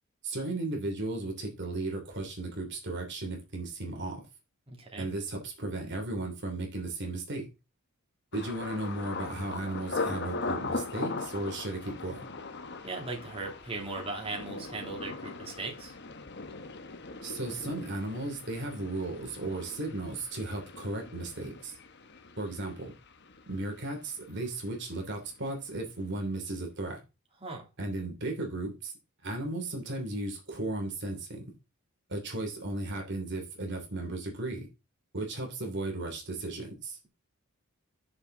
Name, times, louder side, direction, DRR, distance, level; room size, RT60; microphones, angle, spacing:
voice 1, 0.2-4.2 5.0-7.5 8.3-12.2 17.2-21.7 22.4-22.9 23.5-27.0 27.8-28.9 29.2-31.5 32.1-34.7 35.1-37.0, right 2 dB, 55° right, 2 dB, 3.0 m, -35 dB
voice 2, 4.7-5.1 12.8-16.0 27.4-27.7, right 3 dB, 25° right, 0 dB, 3.1 m, -38 dB
Thunder, 8.3-24.1 24.3-25.0 25.4-25.6, left 3 dB, 50° left, 1.2 m, -40 dB
9.7 x 6.9 x 3.9 m, 0.27 s
head